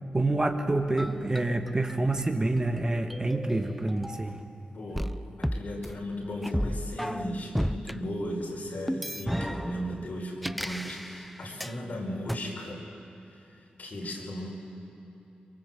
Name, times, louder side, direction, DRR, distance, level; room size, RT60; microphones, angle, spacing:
voice 1, 0.1-4.4, right 2 dB, 25° right, 5 dB, 1.4 m, -27 dB
sound 1, 1.0-4.5 5.0-8.0 8.9-11.8 12.3-12.4, equal, ahead, 0.5 m, -34 dB
voice 2, 4.7-5.1 5.4-12.9 13.8-14.5, equal, 60° left, 0 dB, 4.7 m, -36 dB
24.0 x 23.0 x 7.6 m, 2.9 s
cardioid pair, 80°, 3 cm